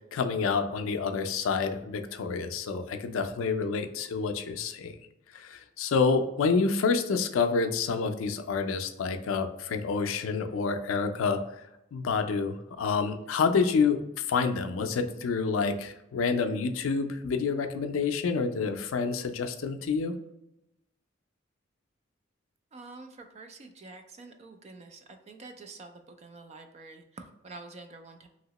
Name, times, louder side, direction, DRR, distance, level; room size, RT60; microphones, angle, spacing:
voice 1, 0.0-5.0 5.3-11.4 11.9-20.2, left 5 dB, 85° left, 7 dB, 0.4 m, -28 dB
voice 2, 22.7-28.3, right 3 dB, 35° right, 6 dB, 0.3 m, -47 dB
2.9 x 2.8 x 2.9 m, 0.88 s
head